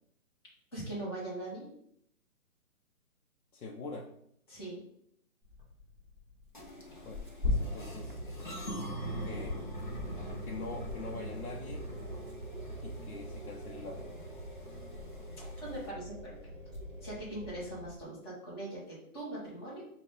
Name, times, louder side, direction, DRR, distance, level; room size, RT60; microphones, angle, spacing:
voice 1, 0.7-1.7 4.5-4.8 15.4-16.3 17.0-19.8, right 1 dB, 15° left, -8 dB, 1.1 m, -41 dB
voice 2, 3.5-4.1 7.0-8.2 9.2-9.6 10.4-11.9 12.8-14.1, left 3 dB, 75° left, -1 dB, 0.8 m, -43 dB
Tearing, 5.4-18.0, left 3 dB, 10° right, 1.5 m, -42 dB
sound 1, 6.5-15.9, right 1 dB, 35° left, 0.5 m, -45 dB
sound 2, 7.5-17.9, right 1 dB, 40° right, 0.5 m, -44 dB
5.5 x 2.4 x 3.7 m, 0.71 s
hypercardioid pair, 175°, 43 cm